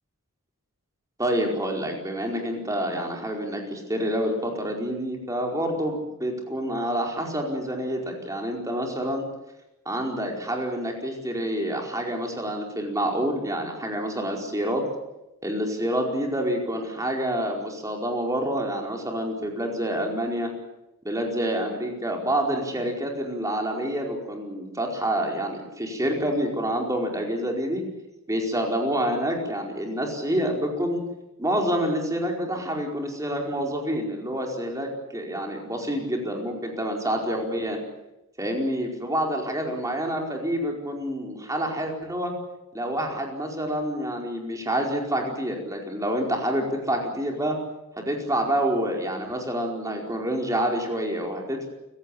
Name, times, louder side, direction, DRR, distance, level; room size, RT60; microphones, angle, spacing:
voice 1, 1.2-9.2 9.8-14.8 15.4-20.5 21.0-27.8 28.3-31.0 31.4-37.8 38.4-42.3 42.7-47.6 48.0-51.7, equal, 15° right, 1 dB, 4.8 m, -27 dB
28.5 x 16.5 x 8.7 m, 0.93 s
head